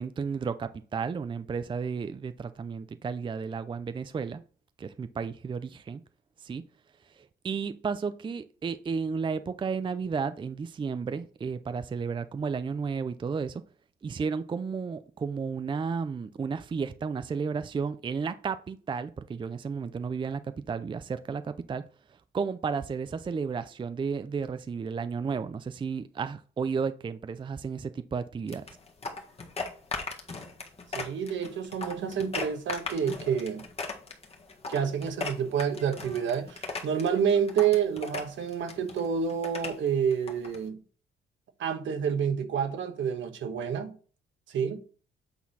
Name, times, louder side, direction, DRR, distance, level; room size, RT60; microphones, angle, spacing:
voice 1, 0.0-4.4 4.8-6.0 6.4-6.6 7.1-13.6 14.0-21.8 22.3-28.6, right 5 dB, 25° right, 0.4 m, -33 dB
sound 1, 28.5-40.6, left 3 dB, 30° left, 1.5 m, -38 dB
voice 2, 30.9-33.6 34.7-40.8 41.6-43.9 44.5-44.8, right 7 dB, 70° right, 1.3 m, -28 dB
8.5 x 4.0 x 4.1 m
cardioid pair, 90°, 20 cm